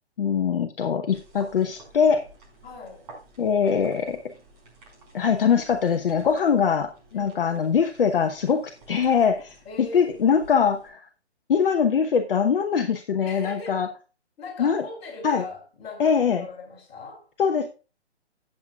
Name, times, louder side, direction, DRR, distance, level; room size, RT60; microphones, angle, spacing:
voice 1, 0.2-2.3 3.4-4.3 5.1-11.1 11.5-13.9 14.6-14.8 15.2-15.4 16.0-16.4 17.4-17.7, left 6 dB, 55° left, 1.0 m, -22 dB
sound 1, 1.1-10.9, right 2 dB, 35° right, 5.5 m, -51 dB
voice 2, 2.6-3.1 7.1-7.7 9.6-10.2 13.2-13.8 14.4-17.3, left 3 dB, 20° left, 4.9 m, -40 dB
16.0 x 7.8 x 2.4 m
figure-of-eight pair, 140°, 34 cm